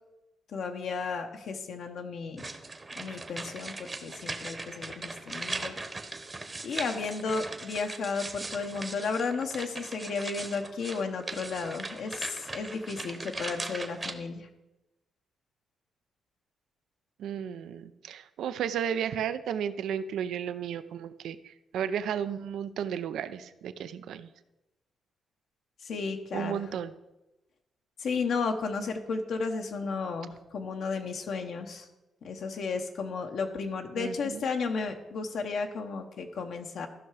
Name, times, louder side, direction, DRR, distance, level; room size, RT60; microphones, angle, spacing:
voice 1, 0.5-2.4 3.0-5.8 6.6-14.5 25.8-26.6 28.0-31.9 32.2-36.9, left 4 dB, 70° left, 4 dB, 0.9 m, -33 dB
sound 1, 2.4-14.1, right 2 dB, 20° right, 0.9 m, -39 dB
voice 2, 17.2-24.3 26.3-26.9 34.0-34.4, right 8 dB, 85° right, 13 dB, 0.5 m, -33 dB
14.0 x 5.7 x 4.8 m, 1.0 s
cardioid pair, 110°, 0 cm